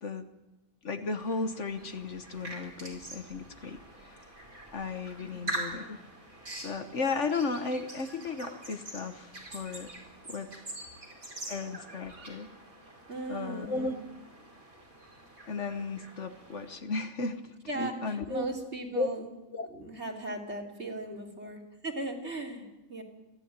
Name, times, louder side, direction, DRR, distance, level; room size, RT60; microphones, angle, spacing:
voice 1, 0.8-4.3 4.7-6.0 6.6-9.9 10.2-10.5 11.5-12.5 13.3-14.0 15.5-18.5 18.9-19.1 19.5-19.7 21.1-21.2, left 4 dB, 60° left, 8 dB, 1.6 m, -35 dB
sound 1, 1.2-16.8, right 1 dB, 80° right, 5.4 m, -44 dB
voice 2, 5.2-5.5 13.1-13.9 17.7-19.3 19.7-23.0, right 2 dB, 50° right, 1 dB, 3.3 m, -38 dB
28.5 x 11.5 x 9.1 m, 1.0 s
omnidirectional pair, 1.4 m